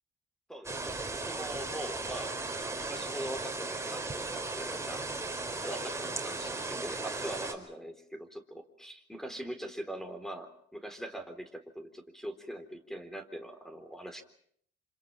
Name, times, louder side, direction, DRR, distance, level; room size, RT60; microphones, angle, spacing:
voice 1, 0.5-2.4 2.7-5.0 5.6-14.2, right 1 dB, ahead, 8 dB, 3.8 m, -42 dB
sound 1, 0.6-7.5, right 3 dB, 15° right, 4.7 m, -36 dB
27.0 x 27.0 x 5.8 m, 0.65 s
cardioid pair, 90°, 20 cm